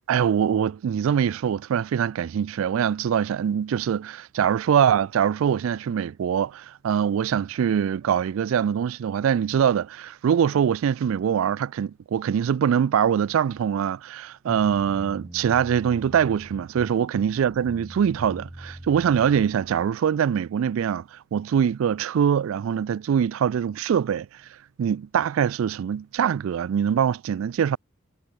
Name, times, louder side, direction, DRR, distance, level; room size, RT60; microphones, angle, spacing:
voice 1, 0.1-24.3 24.8-27.8, right 8 dB, 80° right, 0.3 m, -23 dB
sound 1, 14.5-19.8, right 1 dB, 15° right, 0.9 m, -42 dB
head